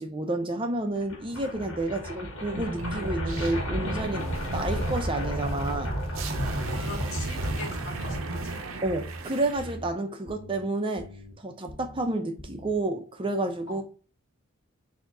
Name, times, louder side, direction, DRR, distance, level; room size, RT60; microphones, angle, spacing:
voice 1, 0.0-4.3 4.5-5.9 8.8-11.1 11.4-13.8, right 2 dB, 25° right, 0.6 m, -30 dB
sound 1, 1.0-9.0, equal, 70° left, 1.5 m, -32 dB
sound 2, 2.4-9.8, right 3 dB, 80° right, 0.7 m, -38 dB
voice 2, 6.6-8.6 13.7-13.8, left 2 dB, 85° left, 1.5 m, -41 dB
sound 3, 7.4-7.8 8.1-8.5 8.8-9.2 9.5-9.9 10.3-10.6 11.0-11.3 11.7-12.0 12.4-12.7, equal, 55° left, 1.1 m, -42 dB
3.9 x 2.8 x 3.5 m
head